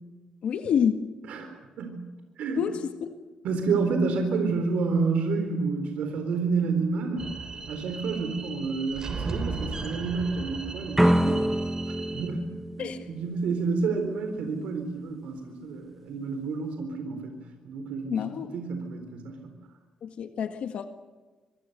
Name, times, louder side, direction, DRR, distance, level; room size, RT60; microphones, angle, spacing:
voice 1, 0.4-1.1 2.6-2.7 3.0-3.1 12.8-13.1 18.1-18.5 20.0-20.9, left 7 dB, 70° left, 6 dB, 1.8 m, -28 dB
voice 2, 1.3-2.1 2.4-2.6 3.4-11.5 11.9-17.4 17.6-19.5, right 4 dB, 85° right, 5 dB, 4.0 m, -29 dB
sound 1, 7.2-12.3, right 3 dB, 35° right, 3.0 m, -37 dB
sound 2, 11.0-13.9, right 1 dB, 5° right, 0.8 m, -26 dB
25.5 x 25.0 x 6.8 m, 1.3 s
cardioid pair, 125°, 2 cm